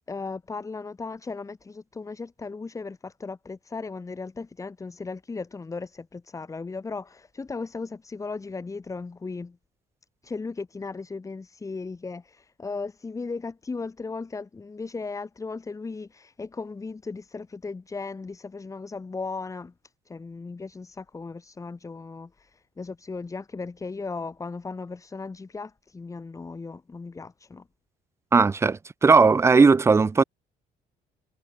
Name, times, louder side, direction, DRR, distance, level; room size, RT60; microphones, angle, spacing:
voice 1, 0.1-9.6 10.2-19.7 20.0-27.7, left 4 dB, 20° left, 1.1 m, -36 dB
voice 2, 28.3-30.2, right 4 dB, 15° right, 0.4 m, -18 dB
cardioid pair, 110°, 17 cm